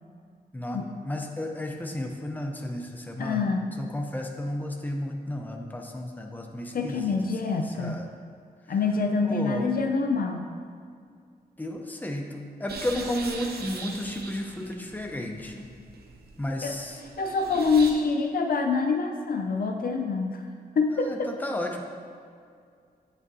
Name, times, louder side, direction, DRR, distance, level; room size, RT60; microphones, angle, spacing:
voice 1, 0.5-3.5 3.8-7.2 7.4-8.1 9.2-9.7 11.6-15.7 16.4-17.0 20.9-21.8, left 1 dB, 10° left, 2 dB, 0.7 m, -33 dB
voice 2, 3.2-3.7 6.7-8.0 8.7-10.4 16.6-16.7 17.2-20.4 20.8-21.3, left 4 dB, 60° left, 4 dB, 0.5 m, -26 dB
sound 1, 12.7-17.9, right 4 dB, 75° right, 0.7 m, -41 dB
8.5 x 6.2 x 2.7 m, 2.2 s
wide cardioid pair, 85°, 16 cm